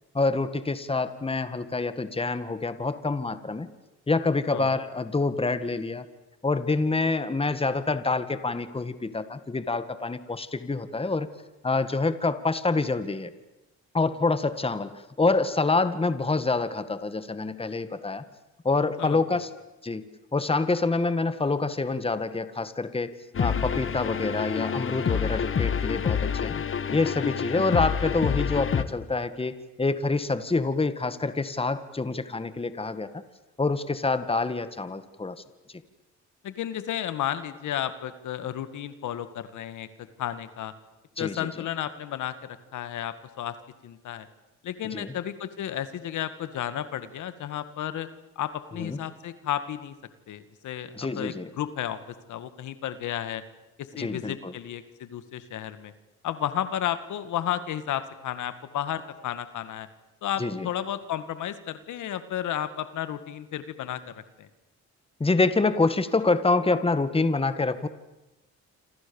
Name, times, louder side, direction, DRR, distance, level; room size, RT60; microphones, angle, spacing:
voice 1, 0.1-3.7 4.1-6.1 6.4-11.3 11.6-13.3 13.9-14.9 15.2-18.2 18.6-19.5 19.8-20.0 20.3-26.6 26.9-33.2 33.6-35.4 41.2-41.5 44.9-45.1 48.8-49.0 50.9-51.5 54.0-54.5 60.4-60.7 65.2-67.9, left 3 dB, 20° left, 12 dB, 2.0 m, -26 dB
sound 1, 23.3-28.8, left 7 dB, 45° left, 1.7 m, -28 dB
voice 2, 36.4-39.9 40.2-40.7 41.2-43.6 43.8-44.3 44.6-48.1 48.4-49.9 50.3-52.0 52.3-53.4 53.8-55.9 56.2-59.9 60.2-64.5, left 11 dB, 75° left, 12 dB, 2.1 m, -32 dB
27.5 x 27.5 x 7.2 m, 1.0 s
cardioid pair, 90°, 30 cm